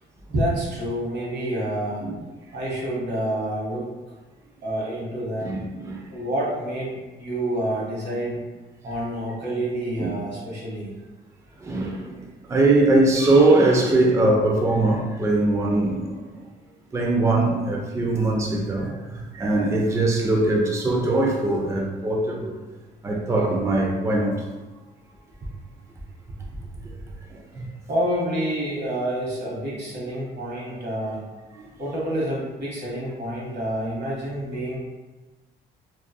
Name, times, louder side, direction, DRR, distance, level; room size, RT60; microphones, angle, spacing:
voice 1, 0.3-2.1 2.5-3.9 4.6-5.5 6.1-8.4 8.8-10.9 27.9-31.2 31.8-34.8, right 1 dB, 60° right, -5 dB, 0.9 m, -28 dB
voice 2, 5.4-6.0 10.0-10.1 11.6-12.2 12.5-16.2 16.9-22.5 23.0-24.4 27.3-27.7 31.6-31.7, right 2 dB, 15° right, -1 dB, 0.4 m, -21 dB
2.6 x 2.2 x 2.2 m, 1.2 s
cardioid pair, 90°, 20 cm